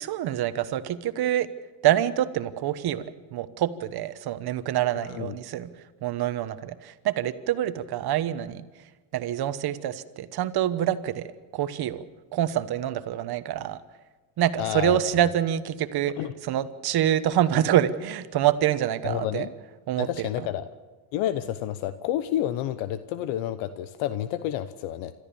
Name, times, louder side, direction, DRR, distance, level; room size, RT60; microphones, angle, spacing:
voice 1, 0.0-1.5 1.8-3.0 3.3-5.7 6.0-8.6 9.1-11.3 11.5-12.0 12.3-13.8 14.4-16.1 16.4-19.5 19.9-20.5, right 11 dB, 50° right, 12 dB, 1.3 m, -26 dB
voice 2, 14.6-15.0 16.2-16.3 19.0-19.5 20.0-20.7 21.1-25.1, left 12 dB, 75° left, 12 dB, 1.0 m, -29 dB
27.5 x 13.5 x 7.0 m, 1.3 s
cardioid pair, 110°, 48 cm